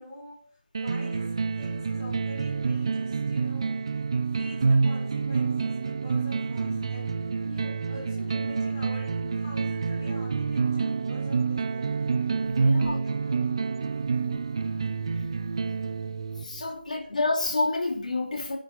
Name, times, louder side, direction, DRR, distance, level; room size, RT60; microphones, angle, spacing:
voice 1, 0.0-3.8 4.3-12.1 12.6-13.5 16.8-17.1, left 1 dB, 20° left, 6.2 m, -46 dB
sound 1, 0.7-16.7, right 4 dB, 30° right, 0.7 m, -28 dB
voice 2, 12.5-13.0 16.4-18.6, left 2 dB, 50° left, 2.9 m, -28 dB
27.5 x 10.0 x 2.6 m
figure-of-eight pair, 165°, 5 cm